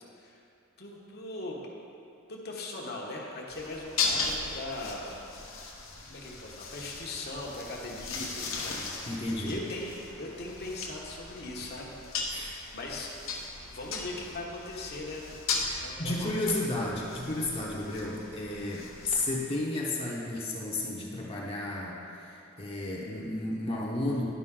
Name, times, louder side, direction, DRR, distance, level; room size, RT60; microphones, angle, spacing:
voice 1, 0.8-1.6 2.3-5.1 6.1-13.2 13.6-15.2 15.7-16.6, left 2 dB, 50° left, -2 dB, 1.2 m, -40 dB
sound 1, 3.5-19.4, left 4 dB, 75° left, 1.0 m, -37 dB
voice 2, 9.1-9.6 12.3-12.6 15.7-24.3, left 2 dB, 30° left, -4 dB, 0.9 m, -33 dB
11.5 x 5.1 x 3.7 m, 2.8 s
head